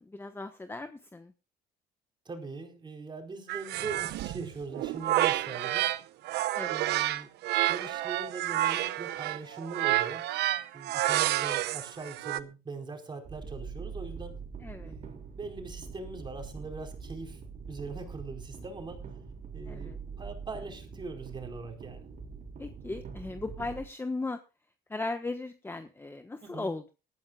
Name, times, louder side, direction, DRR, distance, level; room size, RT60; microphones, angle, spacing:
voice 1, 0.0-1.3 6.5-6.9 14.6-15.0 19.7-20.0 22.6-24.4 24.9-26.9, left 3 dB, 15° left, 8 dB, 1.2 m, -37 dB
voice 2, 2.2-5.9 6.7-7.3 7.7-10.3 10.7-14.4 14.8-17.4 17.7-19.0 19.5-22.0 26.4-26.7, right 4 dB, 25° right, 4 dB, 4.6 m, -41 dB
sound 1, 3.5-6.0 6.3-12.4, right 15 dB, 80° right, 0.9 m, -29 dB
sound 2, 13.2-23.8, right 5 dB, 50° right, 3.7 m, -43 dB
19.5 x 14.0 x 2.4 m, 0.30 s
cardioid pair, 110°, 17 cm